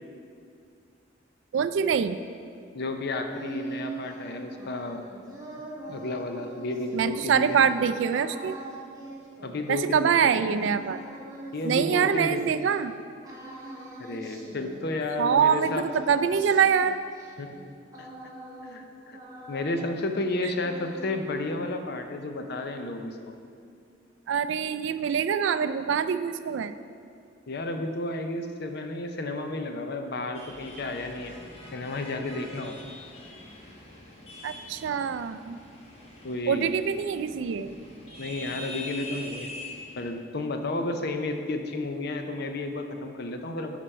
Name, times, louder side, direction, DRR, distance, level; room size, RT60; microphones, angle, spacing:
voice 1, 1.5-2.2 6.9-8.6 9.7-11.0 11.6-12.9 15.2-17.0 24.3-26.7 34.4-35.6 36.5-37.7, right 7 dB, 70° right, 12 dB, 0.3 m, -24 dB
voice 2, 2.7-5.1 5.9-7.6 9.4-10.4 11.5-12.5 14.0-15.9 17.4-17.5 18.0-18.1 18.6-19.2 19.5-23.4 27.5-31.3 31.7-32.8 36.2-36.7 38.2-39.5 40.0-43.8, left 2 dB, 60° left, 6 dB, 0.6 m, -32 dB
sound 1, 2.9-12.8 13.2-15.1 15.4-18.9 19.1-20.1 20.4-21.4, right 2 dB, 20° right, 1.3 m, -43 dB
sound 2, 30.3-40.1, left 2 dB, 35° left, 1.2 m, -44 dB
10.0 x 5.1 x 4.4 m, 2.4 s
head